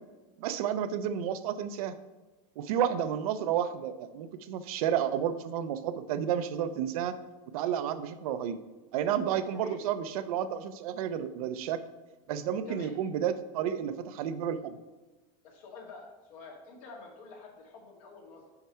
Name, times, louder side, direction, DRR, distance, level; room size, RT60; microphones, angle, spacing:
voice 1, 0.4-1.9 2.6-7.1 7.5-8.6 8.9-11.8 12.3-14.8, right 9 dB, 90° right, 11 dB, 0.6 m, -31 dB
voice 2, 15.4-18.5, left 4 dB, 75° left, -1 dB, 2.1 m, -48 dB
5.8 x 5.5 x 4.3 m, 1.2 s
supercardioid pair, 130°, 18 cm